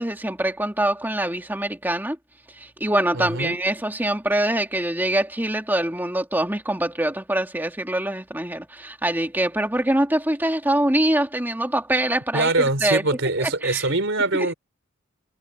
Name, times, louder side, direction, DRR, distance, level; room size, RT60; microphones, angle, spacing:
voice 1, 0.0-2.2 2.6-12.5 12.8-13.0 13.4-13.9 14.3-14.5, right 1 dB, 10° right, 2.2 m, -24 dB
voice 2, 3.1-3.6 12.3-14.5, right 2 dB, 60° right, 3.8 m, -23 dB
head